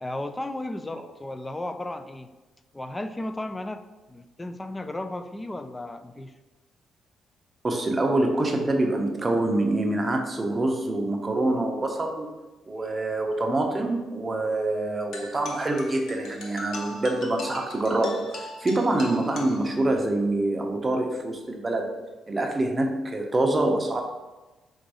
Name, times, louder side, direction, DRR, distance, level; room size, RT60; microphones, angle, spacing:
voice 1, 0.0-2.3 2.7-6.3, left 1 dB, 15° left, 9 dB, 0.3 m, -34 dB
voice 2, 7.6-12.4 12.7-22.0 22.3-24.0, right 2 dB, 25° right, 2 dB, 0.7 m, -25 dB
sound 1, 15.1-20.1, left 2 dB, 75° left, 0.7 m, -40 dB
3.8 x 2.6 x 4.7 m, 1.1 s
cardioid pair, 110°, 0 cm